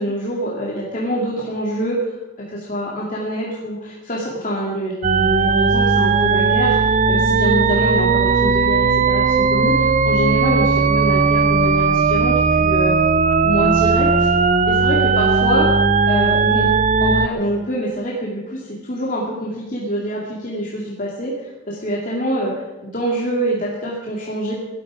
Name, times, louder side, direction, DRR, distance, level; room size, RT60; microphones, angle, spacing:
voice 1, 0.0-13.0 13.4-14.3 14.7-15.7 16.1-16.7 17.0-22.5 22.8-24.5, equal, 45° left, -4 dB, 2.5 m, -25 dB
sound 1, 5.0-17.3, right 4 dB, 40° right, 0.5 m, -17 dB
18.0 x 12.5 x 5.1 m, 1.1 s
head